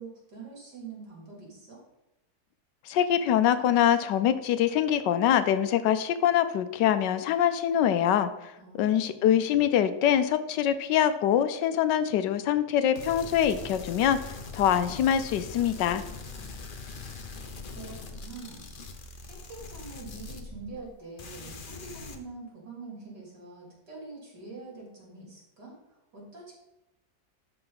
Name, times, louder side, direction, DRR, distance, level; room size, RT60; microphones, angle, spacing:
voice 1, 0.0-1.8 8.6-9.4 16.4-16.5 17.7-18.7 19.2-26.6, right 3 dB, 70° right, -3 dB, 3.8 m, -45 dB
voice 2, 2.9-8.3 8.8-14.2 14.5-16.0, left 10 dB, 85° left, 12 dB, 1.3 m, -24 dB
sound 1, 12.9-20.9 21.2-22.2, left 3 dB, 45° left, 0.7 m, -42 dB
12.5 x 4.8 x 4.1 m, 0.94 s
omnidirectional pair, 1.8 m